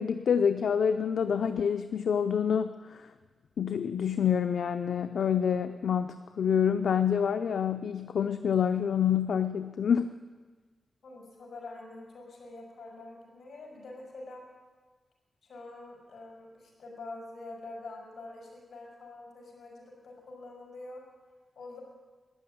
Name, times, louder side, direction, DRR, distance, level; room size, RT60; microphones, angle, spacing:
voice 1, 0.0-3.0 3.6-10.1, left 7 dB, 80° left, 8 dB, 0.5 m, -27 dB
voice 2, 11.0-14.4 15.4-21.0 21.6-21.8, left 2 dB, 65° left, -1 dB, 5.3 m, -45 dB
12.5 x 10.0 x 9.0 m, 1.4 s
wide cardioid pair, 130°, 0 cm